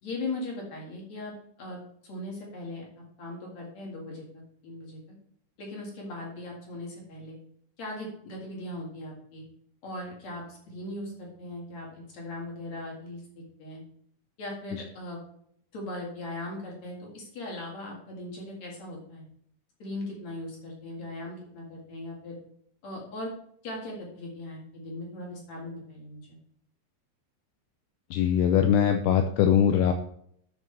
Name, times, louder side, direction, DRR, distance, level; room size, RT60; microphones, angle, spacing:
voice 1, 0.0-2.8 3.2-5.0 5.6-7.4 7.8-9.4 9.8-13.8 14.4-15.2 15.7-19.3 19.8-22.4 22.8-23.3 23.6-26.4, left 1 dB, 50° left, -2 dB, 2.2 m, -39 dB
voice 2, 28.1-29.9, left 9 dB, 85° left, 6 dB, 2.5 m, -22 dB
10.5 x 6.5 x 3.3 m, 0.67 s
omnidirectional pair, 5.9 m